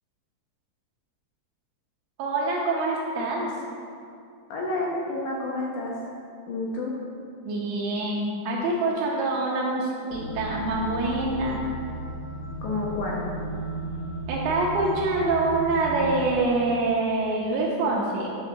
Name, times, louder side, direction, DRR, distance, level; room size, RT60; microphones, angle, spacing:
voice 1, 2.2-3.5 7.4-11.6 14.3-18.3, right 2 dB, 80° right, -3 dB, 2.4 m, -25 dB
voice 2, 4.5-6.0 6.5-7.0 12.6-13.2, left 2 dB, 75° left, -3 dB, 3.0 m, -29 dB
sound 1, 10.1-16.2, right 2 dB, 55° left, 2.6 m, -34 dB
11.0 x 3.8 x 5.7 m, 2.4 s
omnidirectional pair, 5.5 m